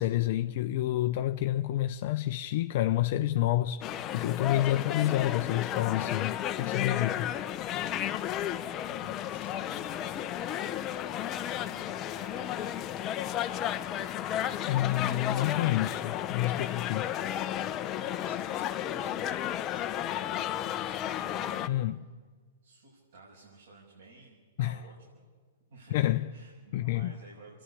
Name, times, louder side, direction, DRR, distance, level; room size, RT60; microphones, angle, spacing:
voice 1, 0.0-7.3 12.1-12.3 14.7-17.1 21.7-22.1 24.6-24.8 25.9-26.3 26.7-27.1, left 14 dB, 55° left, 0.7 m, -29 dB
sound 1, 3.8-21.7, left 11 dB, 30° left, 0.9 m, -33 dB
voice 2, 8.8-10.0 11.1-12.9 13.2-13.7 15.1-15.5 17.6-21.6 22.6-25.3 25.7-27.6, right 3 dB, 70° right, 6.5 m, -54 dB
28.0 x 11.5 x 9.9 m
hypercardioid pair, 130°, 0 cm